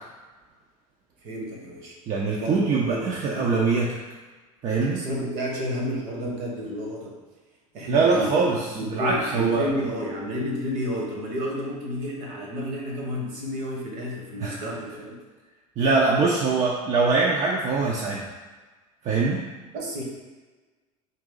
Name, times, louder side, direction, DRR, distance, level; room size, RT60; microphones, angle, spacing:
voice 1, 1.2-1.9 2.4-3.6 4.9-7.2 7.7-8.4 8.7-15.2 19.7-20.0, equal, 55° right, -1 dB, 1.2 m, -31 dB
voice 2, 2.1-4.0 4.6-5.1 7.9-9.7 14.4-14.6 15.8-18.3 19.0-19.5, right 4 dB, 40° right, -3 dB, 0.6 m, -23 dB
4.1 x 2.7 x 3.8 m, 1.3 s
hypercardioid pair, 70°, 19 cm